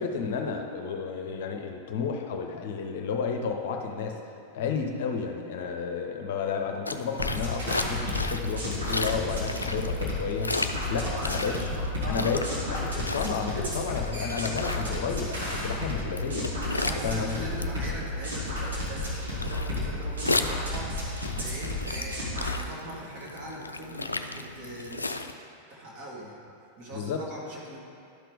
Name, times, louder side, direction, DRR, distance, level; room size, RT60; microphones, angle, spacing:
voice 1, 0.0-11.6 12.1-16.5 17.0-17.5 26.9-27.2, left 6 dB, 55° left, 3 dB, 0.7 m, -32 dB
sound 1, 6.9-25.3, left 2 dB, 80° left, 0.3 m, -35 dB
sound 2, 7.2-22.6, left 1 dB, 70° right, 2.3 m, -32 dB
voice 2, 10.8-11.7 12.0-13.1 13.5-13.8 16.7-25.2 25.7-26.4 26.8-27.8, right 1 dB, 45° right, -5 dB, 2.2 m, -40 dB
12.0 x 5.9 x 3.5 m, 2.4 s
figure-of-eight pair, 90°, 0 cm